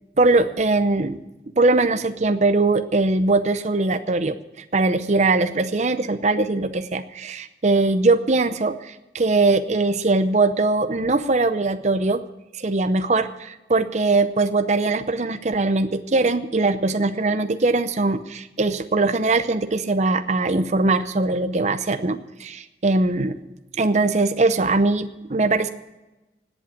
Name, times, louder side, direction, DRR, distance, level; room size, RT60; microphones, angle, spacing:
voice 1, 0.2-1.2 1.6-4.4 4.7-12.2 12.5-23.4 23.8-25.7, right 3 dB, 40° right, 9 dB, 0.6 m, -21 dB
17.5 x 8.5 x 8.5 m, 1.0 s
head